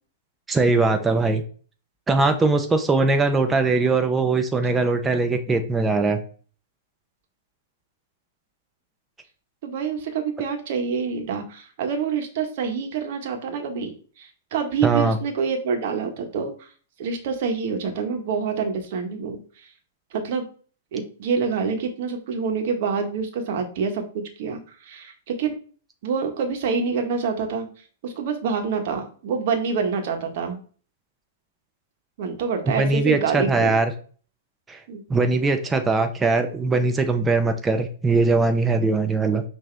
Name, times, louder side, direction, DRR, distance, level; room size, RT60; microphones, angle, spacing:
voice 1, 0.5-1.4 2.1-6.2 14.8-15.2 32.7-33.9 34.7-34.8 35.1-39.4, right 3 dB, 15° right, 7 dB, 0.7 m, -21 dB
voice 2, 9.6-16.7 17.0-19.4 20.1-20.4 20.9-25.6 26.0-27.7 28.0-30.6 32.2-33.8 34.9-35.0, right 5 dB, 55° right, 5 dB, 1.2 m, -27 dB
5.8 x 2.8 x 3.3 m, 0.41 s
hypercardioid pair, 120°, 0 cm